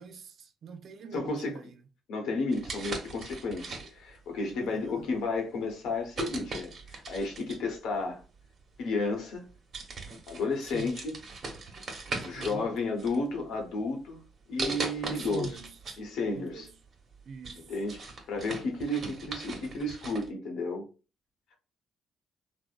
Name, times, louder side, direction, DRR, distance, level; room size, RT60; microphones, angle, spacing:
voice 1, 0.0-1.8 4.6-5.1 10.7-10.9 12.1-13.0 15.1-16.0 16.3-16.7 17.3-17.7, right 6 dB, 65° right, 0.4 m, -44 dB
voice 2, 1.1-1.5 2.1-8.2 8.8-9.5 10.3-11.1 12.2-14.2 14.5-15.5 16.0-16.7 17.6-18.0 18.3-20.8, left 3 dB, 80° left, 0.9 m, -32 dB
sound 1, 2.5-4.2 4.9-5.1 6.1-7.7 8.8-8.9 9.3-9.5 9.7-12.6 13.0-13.7 14.6-16.0 16.4-16.5 17.0-20.3, right 2 dB, 50° right, 1.0 m, -38 dB
3.5 x 2.0 x 2.4 m
cardioid pair, 90°, 0 cm